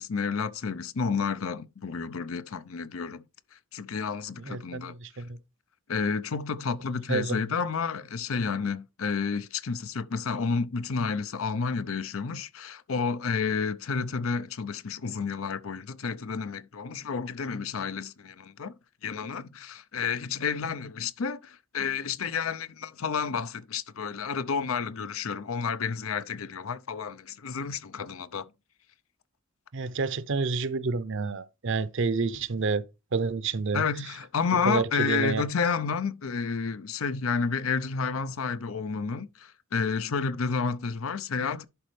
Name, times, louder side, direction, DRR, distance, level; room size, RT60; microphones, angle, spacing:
voice 1, 0.0-3.2 3.5-4.9 5.9-18.7 19.0-28.5 33.7-41.6, left 5 dB, 85° left, 0.6 m, -30 dB
voice 2, 4.4-5.4 6.9-7.4 29.7-32.8 33.1-33.8 34.6-35.4, right 4 dB, 60° right, 0.6 m, -29 dB
11.0 x 4.2 x 3.2 m
head